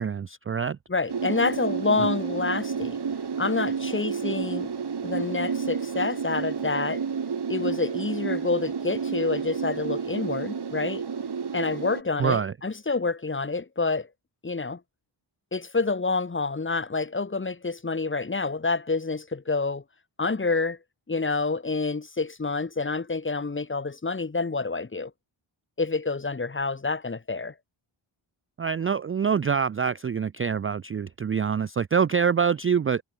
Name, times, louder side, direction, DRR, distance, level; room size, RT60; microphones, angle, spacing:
voice 1, 0.0-0.8 12.2-12.5 28.6-33.0, right 6 dB, 30° right, 0.3 m, -25 dB
voice 2, 0.9-3.0 3.4-4.7 5.0-7.0 7.5-11.0 11.5-14.1 14.4-14.8 15.5-19.8 20.2-20.8 21.1-25.1 25.8-27.5, left 3 dB, 25° left, 1.4 m, -28 dB
sound 1, 1.1-12.0, right 6 dB, 50° right, 2.9 m, -30 dB
wide cardioid pair, 125°, 50 cm